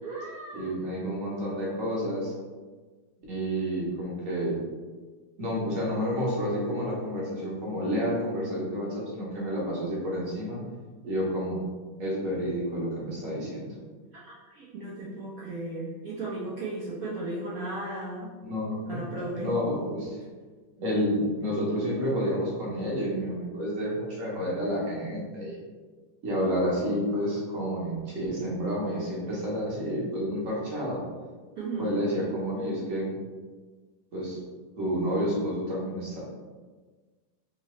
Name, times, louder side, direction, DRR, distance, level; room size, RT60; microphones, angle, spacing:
voice 1, 0.0-0.7 14.1-18.3 18.9-19.6 31.6-32.0, right 2 dB, 70° right, -6 dB, 0.8 m, -35 dB
voice 2, 0.5-2.3 3.3-4.6 5.4-10.6 11.0-11.6 12.0-13.7 18.4-19.0 19.4-20.2 20.8-25.6 26.2-31.0 31.8-33.1 34.1-34.4 34.8-36.2, equal, 45° right, -6 dB, 1.3 m, -30 dB
3.7 x 2.8 x 3.1 m, 1.4 s
omnidirectional pair, 2.2 m